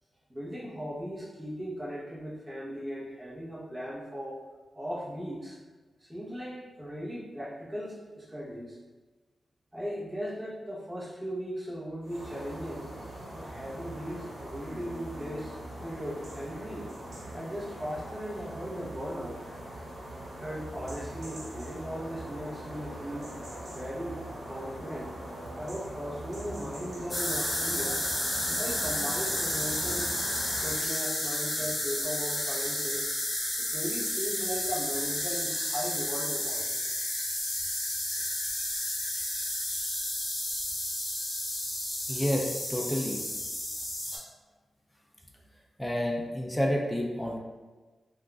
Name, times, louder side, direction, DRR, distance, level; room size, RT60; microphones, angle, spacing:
voice 1, 0.3-4.4 4.7-5.6 6.0-8.8 9.7-12.9 13.3-16.9 17.3-19.4 20.4-23.3 23.7-24.2 24.5-25.2 25.6-28.0 28.5-30.2 30.6-33.1 33.6-37.8, equal, 20° right, -7 dB, 0.9 m, -38 dB
sound 1, 12.0-30.9, right 1 dB, 65° right, 1.2 m, -42 dB
sound 2, 27.1-44.2, left 1 dB, 35° left, 1.3 m, -32 dB
voice 2, 42.1-43.2 45.8-47.4, equal, 10° left, 0 dB, 0.4 m, -29 dB
3.5 x 2.4 x 2.3 m, 1.3 s
cardioid pair, 65°, 0 cm